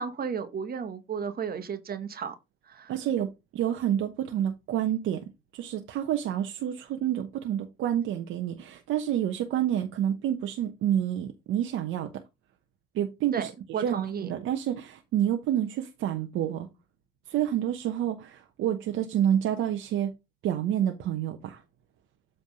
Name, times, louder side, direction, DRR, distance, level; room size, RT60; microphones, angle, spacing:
voice 1, 0.0-2.4 2.7-2.9 13.3-14.3, right 6 dB, 50° right, 1.2 m, -33 dB
voice 2, 2.9-12.2 12.9-14.0 14.2-16.7 17.3-20.1 20.4-21.6, right 10 dB, 85° right, 0.9 m, -28 dB
8.0 x 3.4 x 5.1 m
cardioid pair, 90°, 20 cm